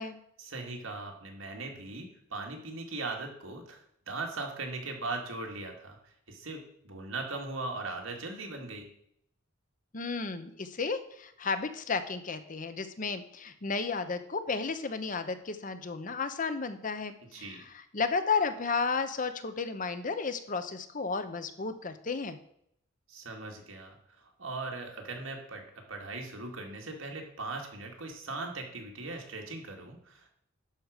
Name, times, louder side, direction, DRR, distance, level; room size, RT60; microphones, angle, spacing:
voice 1, 0.4-8.9 17.3-17.6 23.1-30.3, right 3 dB, 90° right, 2 dB, 2.2 m, -39 dB
voice 2, 9.9-22.4, left 4 dB, 40° left, 10 dB, 0.8 m, -33 dB
11.0 x 4.9 x 6.5 m, 0.70 s
head